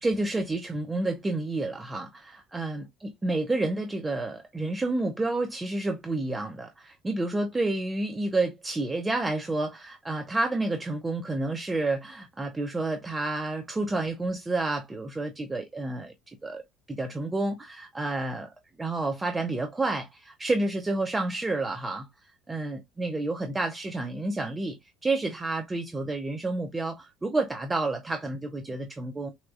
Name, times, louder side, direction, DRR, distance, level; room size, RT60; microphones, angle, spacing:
voice 1, 0.0-2.8 3.2-16.6 16.9-18.5 18.8-22.1 22.5-29.3, right 2 dB, 20° right, 0.6 m, -30 dB
4.2 x 2.3 x 2.5 m
figure-of-eight pair, 60°, 0 cm